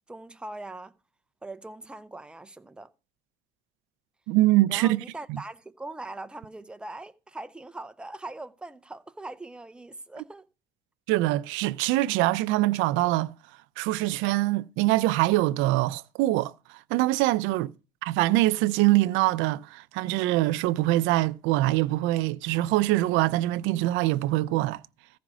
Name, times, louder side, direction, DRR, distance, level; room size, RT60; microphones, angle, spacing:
voice 1, 0.1-0.9 1.4-2.9 4.7-10.5 17.5-17.7, right 2 dB, 5° right, 0.5 m, -41 dB
voice 2, 4.3-5.0 11.1-13.3 13.8-17.7 18.0-24.8, right 17 dB, 90° right, 0.5 m, -24 dB
14.5 x 5.1 x 6.1 m
cardioid pair, 145°, 19 cm